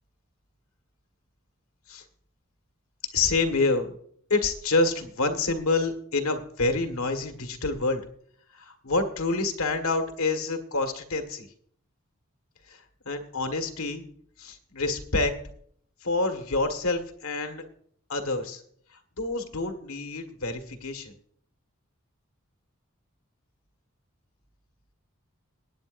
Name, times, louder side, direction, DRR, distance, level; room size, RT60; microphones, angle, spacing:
voice 1, 3.1-3.9 4.3-8.0 8.5-11.5 12.7-14.0 14.4-15.3 16.0-17.6 18.1-18.6 18.9-21.1, left 3 dB, 90° left, 6 dB, 1.7 m, -27 dB
23.0 x 9.4 x 2.6 m, 0.63 s
head